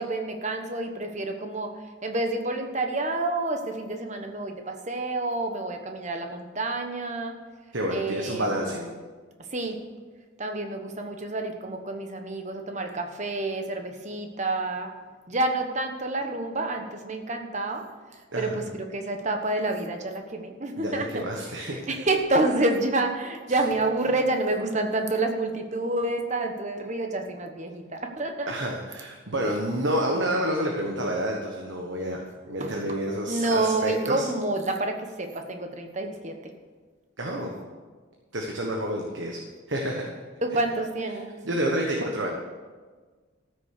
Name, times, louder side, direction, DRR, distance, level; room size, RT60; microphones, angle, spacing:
voice 1, 0.0-1.7 2.0-7.3 7.9-8.8 9.5-9.8 10.4-14.9 15.3-17.8 18.3-21.2 21.6-28.5 32.6-32.8 33.3-36.3 40.4-41.4, right 2 dB, 35° right, 4 dB, 1.2 m, -28 dB
voice 2, 7.7-8.8 18.3-18.6 20.8-21.8 28.5-32.2 32.5-34.3 37.2-37.5 38.3-39.4 39.7-40.0 40.5-40.6 41.4-42.3, right 1 dB, 60° right, 0 dB, 1.4 m, -29 dB
14.0 x 6.5 x 6.7 m, 1.4 s
head